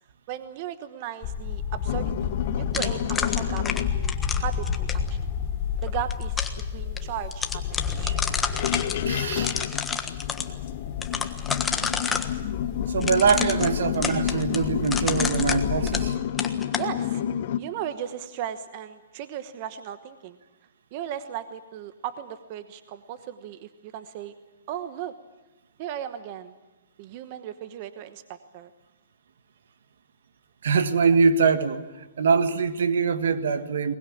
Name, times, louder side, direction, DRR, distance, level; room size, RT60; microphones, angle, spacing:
voice 1, 0.3-2.3 2.6-3.7 3.9-5.2 5.8-8.1 16.7-17.2 17.6-20.4 20.9-24.3 24.7-25.1 25.8-26.5 27.0-28.7, right 10 dB, 40° right, 11 dB, 1.1 m, -36 dB
sound 1, 1.2-16.1, left 7 dB, 35° left, 3.2 m, -31 dB
sound 2, 1.9-4.0 6.6-6.7 7.0-7.1 7.5-7.6 8.3-17.6, left 10 dB, 55° left, 1.0 m, -30 dB
sound 3, 2.7-5.1 5.9-6.6 7.0-7.1 7.3-9.0 9.3-10.5 11.0-12.3 13.0-16.1 16.4-16.9, left 5 dB, 10° left, 1.4 m, -29 dB
voice 2, 9.1-9.6 12.9-16.2 30.6-31.8 32.2-34.0, right 5 dB, 75° right, 10 dB, 1.6 m, -23 dB
22.0 x 20.5 x 8.6 m, 1.1 s
hypercardioid pair, 140°, 0 cm